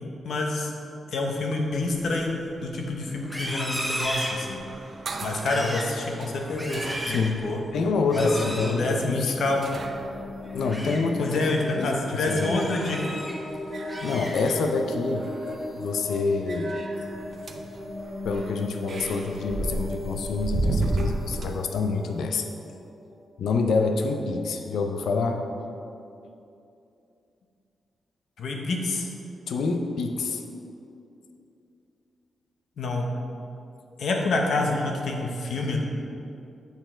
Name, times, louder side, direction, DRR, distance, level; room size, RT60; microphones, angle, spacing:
voice 1, 0.2-0.7 1.1-2.3 2.6-4.6 5.2-7.6 8.1-8.3 8.7-9.7 11.2-13.0 28.4-29.1 32.8-33.1 34.0-35.8, left 2 dB, 65° left, 1 dB, 0.9 m, -27 dB
sound 1, 1.7-11.5 12.8-13.2 13.5-14.8 15.1-15.8 16.4-21.5, right 2 dB, 45° right, 0.5 m, -35 dB
Livestock farm animals working animals, 3.2-4.9 5.3-5.9 6.4-7.3 8.1-8.7 10.4-11.0 11.5-11.7 12.2-13.3 13.7-14.8 15.2-15.5 15.9-16.3, equal, ahead, 0.9 m, -35 dB
voice 2, 7.1-7.4 7.7-9.4 10.5-11.4 11.8-12.6 14.0-15.3 15.8-16.7 18.2-22.5 23.4-25.4 29.5-30.4, left 4 dB, 90° left, 5 dB, 0.5 m, -27 dB
sound 2, 8.9-23.6, left 1 dB, 40° left, 1.4 m, -37 dB
8.2 x 4.5 x 4.4 m, 2.7 s
wide cardioid pair, 155°, 0 cm